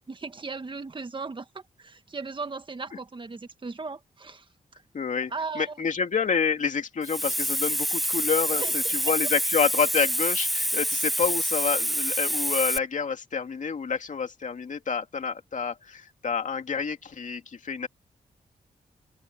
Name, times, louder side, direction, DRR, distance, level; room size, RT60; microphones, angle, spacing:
voice 1, 0.1-4.5 5.3-5.8 8.5-8.9, right 4 dB, 35° right, 1.7 m, -37 dB
voice 2, 4.9-17.9, left 5 dB, 60° left, 2.5 m, -28 dB
Hiss, 7.0-12.8, equal, ahead, 0.4 m, -27 dB
cardioid pair, 90°, 15 cm